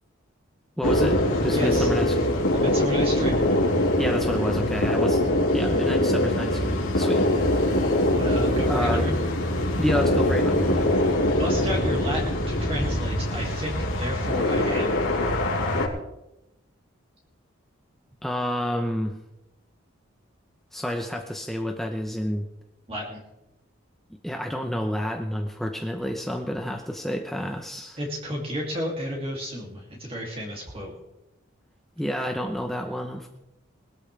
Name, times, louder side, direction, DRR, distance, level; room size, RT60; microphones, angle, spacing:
sound 1, 0.8-15.9, left 1 dB, 85° left, 3.1 m, -23 dB
voice 1, 0.8-2.1 4.0-5.2 5.5-7.3 8.7-9.1 9.8-10.9 18.2-19.1 20.7-22.5 24.2-28.0 32.0-33.3, equal, ahead, 3 dB, 0.8 m, -29 dB
voice 2, 1.5-1.9 2.5-3.4 8.1-9.2 11.3-15.0 22.9-23.2 28.0-30.9, equal, 25° right, -2 dB, 2.6 m, -32 dB
21.0 x 13.0 x 3.3 m, 0.94 s
head